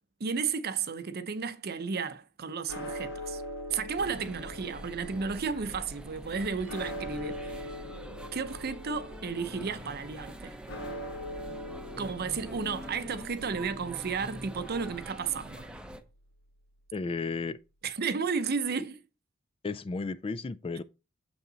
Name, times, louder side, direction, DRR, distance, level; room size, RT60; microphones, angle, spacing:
voice 1, 0.2-3.4 3.7-7.5 8.3-10.6 12.0-15.7 17.8-19.0, right 5 dB, 50° right, 0.7 m, -33 dB
sound 1, 2.7-16.9, equal, 65° left, 1.2 m, -43 dB
sound 2, 4.0-16.0, right 1 dB, 5° right, 0.7 m, -45 dB
voice 2, 16.9-17.6 19.6-20.8, left 4 dB, 25° left, 0.3 m, -33 dB
7.1 x 5.6 x 3.9 m
head